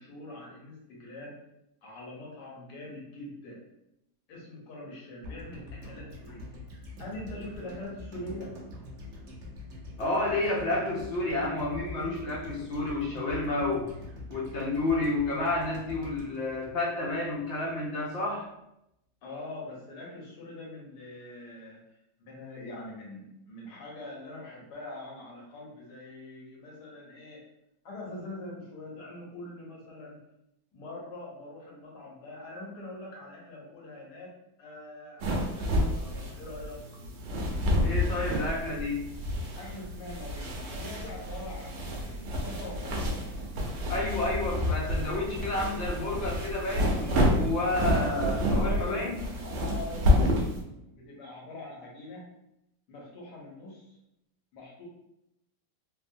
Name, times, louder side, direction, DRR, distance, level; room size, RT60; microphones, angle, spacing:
voice 1, 0.0-1.4 1.8-3.6 4.3-6.4 7.0-8.5 19.2-21.8 22.2-27.4 27.8-30.2 30.7-34.3 34.6-36.8 39.6-43.4 48.5-49.1 49.4-52.2 52.9-54.0 54.5-54.8, left 2 dB, 85° left, -3 dB, 1.4 m, -43 dB
sound 1, 5.2-17.4 17.7-17.8, left 1 dB, 60° right, 0.8 m, -44 dB
voice 2, 10.0-13.9 14.3-18.5 37.8-39.1 43.9-49.2, left 2 dB, 65° left, -3 dB, 0.7 m, -30 dB
sound 2, 35.2-50.6, left 1 dB, 85° right, 1.2 m, -29 dB
3.5 x 2.1 x 2.5 m, 0.84 s
omnidirectional pair, 1.7 m